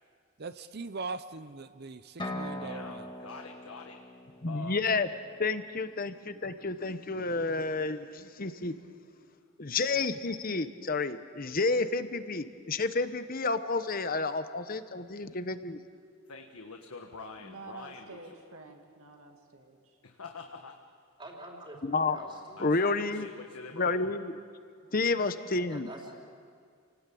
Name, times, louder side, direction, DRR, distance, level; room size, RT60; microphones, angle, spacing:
voice 1, 0.4-3.1, right 3 dB, 45° right, 12 dB, 0.7 m, -40 dB
sound 1, 2.2-5.9, left 1 dB, 20° left, 2.3 m, -42 dB
voice 2, 2.5-4.0 4.5-4.8 16.3-18.2 20.0-20.8 22.6-24.0, left 4 dB, 80° left, 3 dB, 1.5 m, -45 dB
voice 3, 4.4-5.1 5.4-8.7 9.6-15.8 21.8-22.2 22.6-23.3 23.8-24.3 24.9-25.9, left 3 dB, 40° left, 10 dB, 1.0 m, -30 dB
voice 4, 17.4-20.0, right 3 dB, 70° right, 3 dB, 2.5 m, -49 dB
voice 5, 21.2-22.7 25.7-26.1, right 1 dB, 20° right, -1 dB, 3.7 m, -46 dB
29.0 x 18.5 x 8.5 m, 2.2 s
head